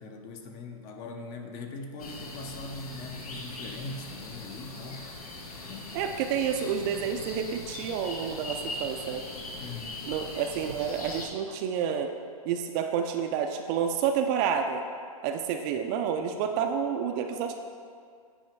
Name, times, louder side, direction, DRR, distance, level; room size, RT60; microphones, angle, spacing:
voice 1, 0.0-5.1 5.7-6.0 6.3-6.4 9.6-10.0, left 3 dB, 35° left, 4 dB, 0.8 m, -41 dB
sound 1, 2.0-11.3, left 2 dB, 75° left, 1.5 m, -40 dB
voice 2, 5.9-9.2 10.1-12.1 12.4-14.8 15.2-17.6, right 7 dB, 30° right, 5 dB, 0.4 m, -29 dB
8.9 x 4.9 x 4.6 m, 2.1 s
hypercardioid pair, 135°, 19 cm